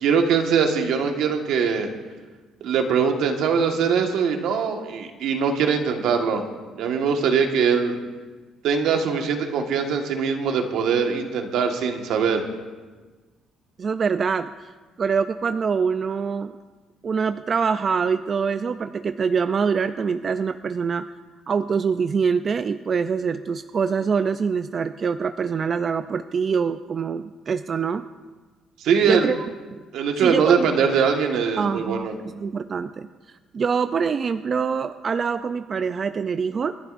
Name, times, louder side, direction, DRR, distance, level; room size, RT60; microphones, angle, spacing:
voice 1, 0.0-1.9 2.6-6.4 6.7-8.0 8.6-12.5 28.8-29.3 29.9-32.1, right 6 dB, 75° right, 4 dB, 1.5 m, -22 dB
voice 2, 13.8-14.7 15.0-16.5 17.0-21.1 21.5-28.0 29.0-29.4 29.7-29.8 30.2-30.7 31.6-36.7, right 6 dB, 35° right, 10 dB, 0.4 m, -25 dB
29.0 x 11.5 x 2.6 m, 1.3 s
cardioid pair, 135°, 0 cm